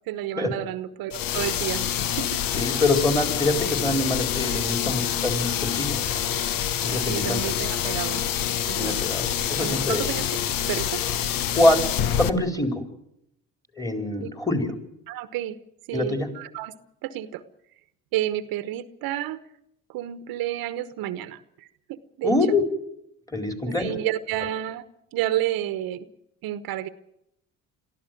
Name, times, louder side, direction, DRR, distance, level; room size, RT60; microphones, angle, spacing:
voice 1, 0.1-1.9 2.2-2.3 6.9-8.2 8.7-9.0 9.6-10.3 10.6-11.0 14.2-14.3 15.1-15.6 15.9-16.7 17.0-17.4 18.1-19.4 19.9-22.4 23.7-24.8 25.1-26.1 26.4-26.9, right 13 dB, 75° right, 13 dB, 1.1 m, -30 dB
sound 1, 1.1-12.3, left 10 dB, 70° left, 1.2 m, -26 dB
voice 2, 2.5-6.2 6.8-7.4 8.8-10.0 11.5-11.8 12.2-12.7 13.8-14.7 15.9-16.3 22.2-22.6 23.3-23.9, left 2 dB, 10° left, 5 dB, 4.2 m, -24 dB
23.0 x 14.0 x 9.2 m, 0.79 s
supercardioid pair, 80°, 35 cm